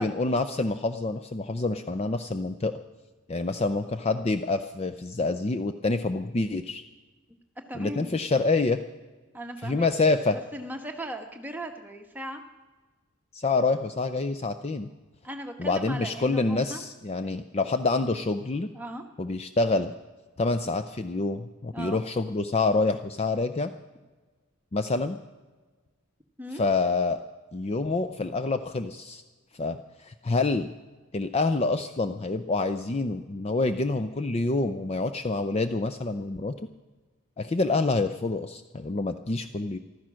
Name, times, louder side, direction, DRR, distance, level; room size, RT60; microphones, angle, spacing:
voice 1, 0.0-2.8 3.3-6.8 7.7-8.8 9.6-10.4 13.3-14.9 15.6-18.7 19.2-19.9 20.4-23.7 24.7-25.2 26.5-27.2 27.5-29.2 29.5-29.8 30.0-30.7 31.1-36.5 37.4-39.8, left 3 dB, 30° left, 10 dB, 0.5 m, -27 dB
voice 2, 7.7-8.2 9.3-9.9 10.3-12.4 15.2-16.8 17.2-17.3 18.7-19.0 21.7-22.0 26.4-26.6, right 1 dB, 10° right, 3 dB, 1.2 m, -38 dB
15.0 x 12.5 x 6.3 m, 1.3 s
head